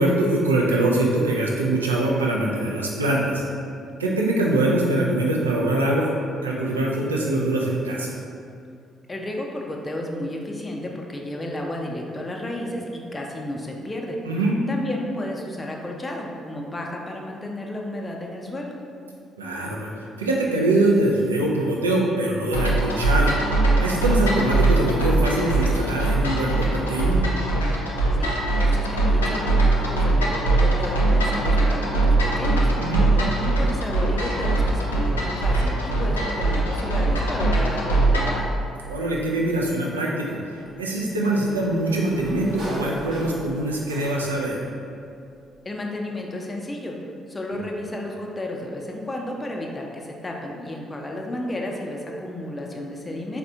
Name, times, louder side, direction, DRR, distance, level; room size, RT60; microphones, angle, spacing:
voice 1, 0.0-3.4 4.0-6.1 6.4-8.1 14.2-14.6 19.4-19.9 20.2-23.5 23.8-27.2 32.8-33.1 38.9-44.6 47.5-47.7, right 1 dB, 90° right, -3 dB, 0.3 m, -23 dB
voice 2, 9.1-14.2 14.7-18.7 28.1-38.5 45.6-47.0 47.3-53.4, left 1 dB, 25° left, 0 dB, 0.5 m, -32 dB
sound 1, 22.5-38.4, right 2 dB, 85° left, 0.3 m, -21 dB
Sliding door, 40.6-44.5, equal, 65° right, 0.9 m, -37 dB
4.1 x 2.1 x 2.7 m, 2.5 s
figure-of-eight pair, 45°, 0 cm